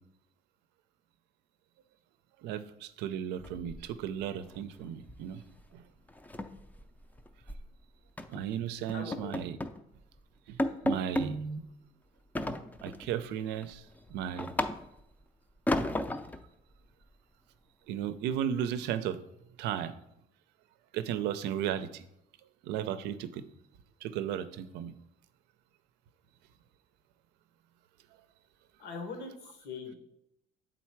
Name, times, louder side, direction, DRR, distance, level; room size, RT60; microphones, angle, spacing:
voice 1, 2.4-5.4 5.7-5.8 8.3-9.6 10.5-10.6 10.8-11.6 12.8-13.8 14.1-14.5 17.9-19.2 19.6-19.9 20.9-22.0 22.6-23.5 24.0-24.9, right 9 dB, 85° right, 12 dB, 0.5 m, -35 dB
sound 1, 3.4-4.2 4.5-4.8 5.1-5.3 5.6-5.7 6.1-7.7 8.2-8.4 8.9-9.8 10.2-10.3 10.6-11.3 12.4-13.1 13.5-15.1 15.7-16.4, left 1 dB, 10° left, 0.4 m, -34 dB
voice 2, 8.9-9.5 28.8-29.9, left 4 dB, 85° left, 4 dB, 1.4 m, -41 dB
7.3 x 3.9 x 4.5 m, 0.79 s
cardioid pair, 110°, 17 cm